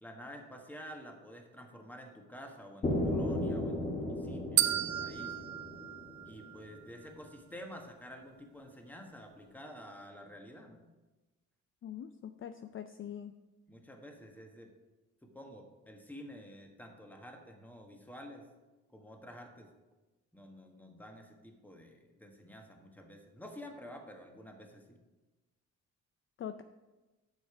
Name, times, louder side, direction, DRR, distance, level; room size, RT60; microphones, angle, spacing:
voice 1, 0.0-5.3 6.2-10.8 13.7-14.7 15.2-18.4 18.9-19.7 20.3-25.0, equal, 5° left, 3 dB, 1.4 m, -50 dB
sound 1, 2.8-6.7, left 1 dB, 25° left, 1.9 m, -35 dB
sound 2, 4.6-6.8, right 13 dB, 70° right, 0.6 m, -33 dB
voice 2, 11.8-13.3 26.4-26.6, left 9 dB, 45° left, 9 dB, 0.4 m, -43 dB
8.1 x 6.5 x 5.0 m, 1.1 s
cardioid pair, 90°, 30 cm